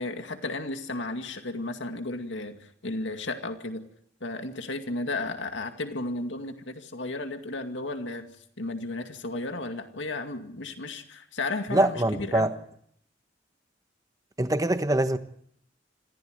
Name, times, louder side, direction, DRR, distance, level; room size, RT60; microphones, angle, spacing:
voice 1, 0.0-3.9 4.2-8.3 8.6-12.5, left 2 dB, 85° left, 2.2 m, -34 dB
voice 2, 11.7-12.5 14.4-15.2, right 1 dB, 20° right, 1.1 m, -24 dB
26.0 x 15.5 x 8.0 m
head